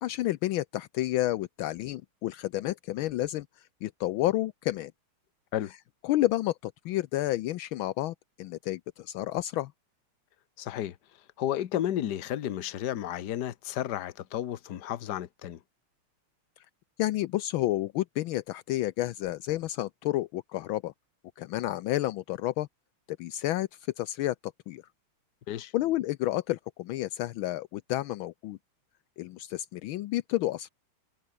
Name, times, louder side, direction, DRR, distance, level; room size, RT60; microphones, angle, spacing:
voice 1, 0.0-4.9 6.0-9.7 17.0-20.9 21.4-22.7 23.2-23.7 24.0-24.8 25.7-28.6 29.2-30.7, left 15 dB, 75° left, 1.4 m, -30 dB
voice 2, 10.6-11.0 11.4-15.6 25.5-25.7, left 11 dB, 55° left, 1.5 m, -32 dB
omnidirectional pair, 2.3 m